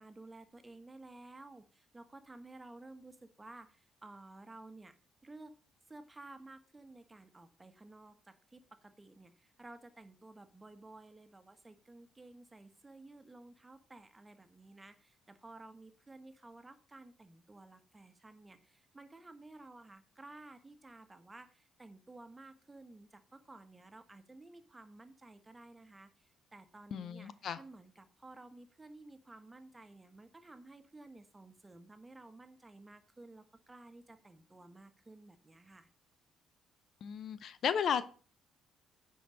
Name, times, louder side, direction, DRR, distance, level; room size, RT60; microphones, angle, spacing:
voice 1, 0.0-4.9 5.2-5.6 5.9-35.9, right 2 dB, 20° right, 9 dB, 1.4 m, -54 dB
voice 2, 26.9-27.6 37.0-38.0, left 7 dB, 60° left, 15 dB, 0.5 m, -34 dB
10.0 x 4.8 x 5.2 m, 0.40 s
hypercardioid pair, 50°, 0 cm